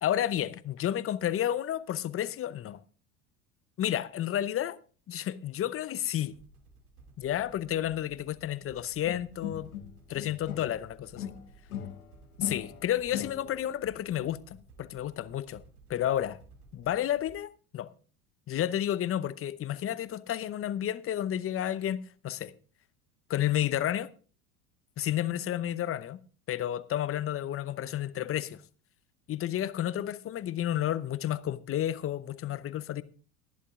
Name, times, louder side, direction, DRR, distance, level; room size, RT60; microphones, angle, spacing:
voice 1, 0.0-2.8 3.8-4.8 5.1-6.3 7.2-9.7 10.1-11.3 12.4-15.6 15.9-16.4 16.7-17.9 18.5-22.0 22.2-22.5 23.3-24.1 25.0-26.2 26.5-28.6 29.3-33.0, left 11 dB, 30° left, 0.8 m, -31 dB
sound 1, 6.3-17.4, right 3 dB, 75° right, 2.4 m, -56 dB
sound 2, 9.1-10.8 11.2-13.7, left 10 dB, 75° left, 1.6 m, -40 dB
22.0 x 11.0 x 2.5 m
hypercardioid pair, 75°, 45 cm